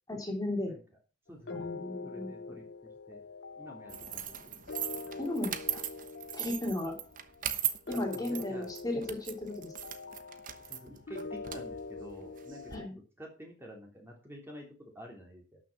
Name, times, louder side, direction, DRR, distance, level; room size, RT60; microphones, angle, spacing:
voice 1, 0.1-0.7 1.5-2.6 5.2-5.8 6.3-6.9 7.9-9.7 12.7-12.9, left 1 dB, 20° left, 1 dB, 3.1 m, -35 dB
voice 2, 1.3-1.7 2.0-2.7 3.1-3.2 3.6-4.7 7.9-8.7 10.6-12.8 13.2-15.6, equal, 10° right, 0 dB, 3.2 m, -49 dB
sound 1, 1.5-12.9, left 4 dB, 60° left, 0.6 m, -44 dB
sound 2, 3.9-12.8, right 11 dB, 45° right, 1.1 m, -39 dB
12.0 x 6.5 x 6.0 m, 0.34 s
head